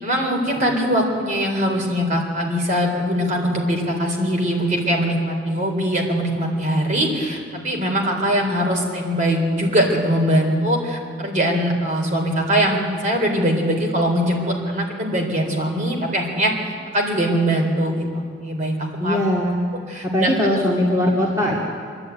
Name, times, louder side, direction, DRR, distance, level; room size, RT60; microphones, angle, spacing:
voice 1, 0.0-16.5 16.9-19.2 19.9-20.6, equal, 40° right, 1 dB, 4.0 m, -21 dB
voice 2, 19.0-19.6 20.0-21.6, left 1 dB, 15° right, -4 dB, 2.6 m, -20 dB
26.5 x 11.0 x 9.4 m, 2.1 s
head